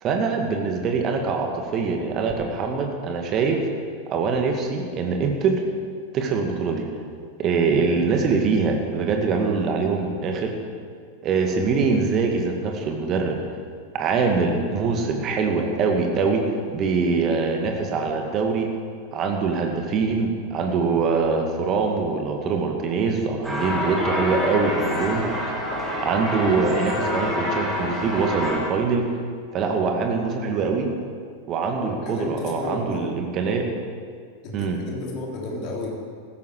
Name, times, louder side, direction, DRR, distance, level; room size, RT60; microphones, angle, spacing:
voice 1, 0.0-3.7 4.1-5.6 6.1-6.9 7.4-10.5 11.2-13.4 13.9-16.4 16.7-18.7 19.1-25.5 26.0-29.0 29.5-30.9 31.5-33.7 34.5-34.8, right 4 dB, 35° right, 2 dB, 2.1 m, -23 dB
sound 1, 23.4-28.6, left 1 dB, 5° right, 3.1 m, -27 dB
voice 2, 31.8-33.1 34.4-35.9, left 3 dB, 40° left, -1 dB, 3.3 m, -32 dB
15.5 x 13.5 x 4.8 m, 2.1 s
figure-of-eight pair, 90°, 0 cm